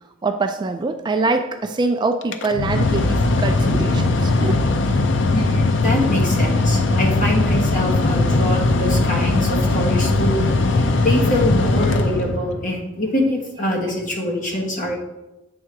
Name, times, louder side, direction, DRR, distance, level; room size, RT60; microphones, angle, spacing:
voice 1, 0.2-4.5, right 3 dB, 25° right, 7 dB, 0.3 m, -23 dB
Mechanical fan, 2.2-12.7, left 2 dB, 70° left, 0.6 m, -19 dB
voice 2, 5.3-10.4 10.7-15.0, left 1 dB, 45° left, -1 dB, 1.4 m, -24 dB
7.8 x 3.7 x 4.6 m, 0.97 s
head